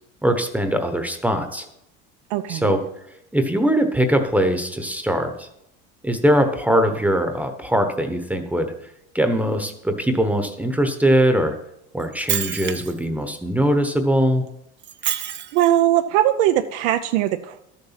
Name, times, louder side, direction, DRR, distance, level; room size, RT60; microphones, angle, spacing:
voice 1, 0.2-1.7 2.5-2.8 3.3-5.5 6.0-8.7 9.1-11.6 11.9-14.4, equal, 5° right, 6 dB, 1.0 m, -21 dB
voice 2, 2.3-2.8 15.5-17.6, right 13 dB, 85° right, 7 dB, 0.8 m, -20 dB
Shatter, 12.0-13.0 14.8-15.8, right 10 dB, 35° right, 0.8 m, -27 dB
12.5 x 7.1 x 5.8 m, 0.79 s
cardioid pair, 130°, 32 cm